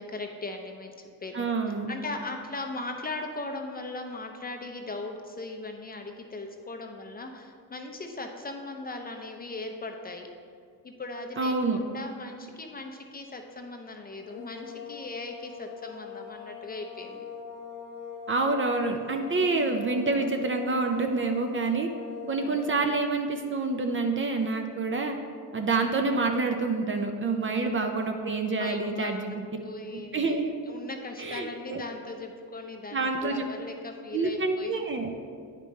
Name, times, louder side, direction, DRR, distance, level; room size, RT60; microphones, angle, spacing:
voice 1, 0.0-10.3 10.8-17.2 19.4-19.7 22.4-22.6 27.5-27.7 28.6-30.4 30.7-34.8, left 2 dB, 20° left, 3 dB, 0.6 m, -39 dB
voice 2, 1.3-1.9 11.4-11.8 18.3-21.9 22.3-25.2 25.5-29.4 29.9-30.5 31.2-31.8 32.9-33.4 34.1-35.1, right 3 dB, 30° right, 5 dB, 0.6 m, -27 dB
sound 1, 14.2-22.9, left 6 dB, 85° left, 1.5 m, -43 dB
9.1 x 5.2 x 3.2 m, 2.1 s
cardioid pair, 90°, 41 cm